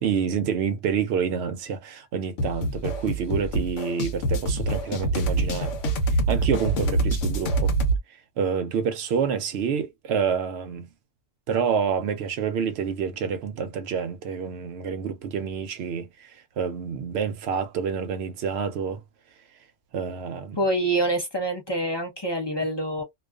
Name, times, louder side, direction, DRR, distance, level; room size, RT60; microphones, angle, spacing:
voice 1, 0.0-5.7 6.3-7.7 8.4-10.9 11.5-19.0 19.9-20.6, right 6 dB, 65° right, 0.8 m, -28 dB
sound 1, 2.4-8.0, right 2 dB, 80° left, 1.0 m, -25 dB
voice 2, 20.6-23.0, right 1 dB, 25° left, 0.6 m, -26 dB
2.4 x 2.3 x 2.2 m
omnidirectional pair, 1.3 m